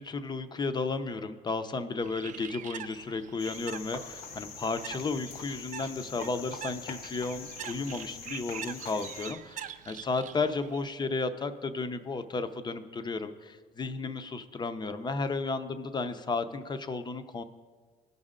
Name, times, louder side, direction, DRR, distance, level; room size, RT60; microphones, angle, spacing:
voice 1, 0.0-17.4, left 3 dB, 25° left, 10 dB, 0.6 m, -33 dB
Bird, 2.0-10.9, right 9 dB, 50° right, 0.5 m, -45 dB
Cricket, 3.4-9.3, left 5 dB, 65° left, 1.0 m, -44 dB
16.0 x 5.4 x 3.7 m, 1.4 s
cardioid pair, 110°, 17 cm